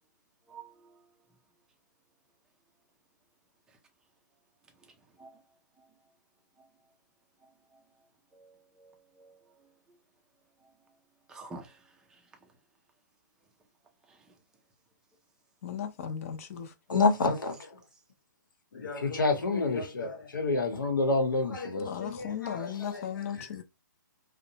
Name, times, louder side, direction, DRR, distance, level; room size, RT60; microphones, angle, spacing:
voice 1, 8.3-9.4 11.3-11.8, right 3 dB, 5° right, 0.4 m, -48 dB
voice 2, 15.6-17.0 21.8-23.6, left 8 dB, 45° left, 0.6 m, -37 dB
voice 3, 16.9-17.8 18.7-22.7 22.9-23.0, left 3 dB, 90° left, 0.9 m, -28 dB
2.5 x 2.1 x 2.8 m
hypercardioid pair, 150°, 11 cm